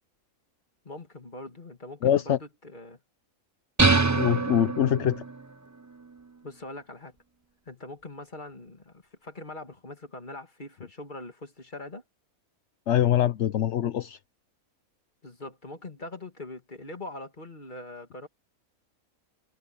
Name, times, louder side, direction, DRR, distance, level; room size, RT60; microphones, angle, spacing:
voice 1, 0.8-3.0 6.4-7.2 7.7-12.0 15.2-18.3, left 2 dB, 35° left, 2.6 m, -42 dB
voice 2, 2.0-2.4 4.1-5.2 12.9-14.2, left 11 dB, 60° left, 1.0 m, -24 dB
sound 1, 3.8-5.4, right 3 dB, 20° right, 0.5 m, -24 dB
omnidirectional pair, 1.5 m